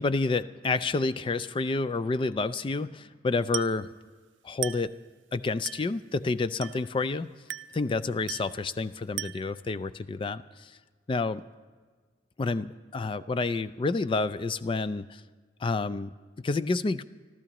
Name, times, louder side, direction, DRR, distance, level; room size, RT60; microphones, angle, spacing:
voice 1, 0.0-3.9 4.4-4.9 5.3-7.3 7.7-10.7 11.1-11.4 12.4-15.2 15.6-16.1 16.4-17.0, left 3 dB, 25° left, 15 dB, 0.3 m, -29 dB
Glass, 3.5-3.9 4.6-5.0 5.7-6.0 6.6-7.0 7.5-7.9 8.3-8.6 9.2-9.6, right 14 dB, 75° right, 0.4 m, -37 dB
26.0 x 14.0 x 3.0 m, 1.5 s
head